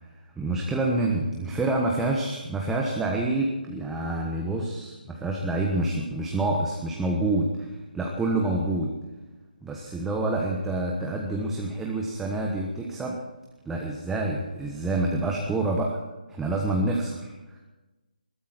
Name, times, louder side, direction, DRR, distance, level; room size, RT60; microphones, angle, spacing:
voice 1, 0.4-8.9 9.6-13.2 13.6-16.0 16.3-17.6, right 2 dB, 5° right, -1 dB, 1.2 m, -27 dB
21.0 x 14.0 x 4.6 m, 1.1 s
figure-of-eight pair, 160°, 5 cm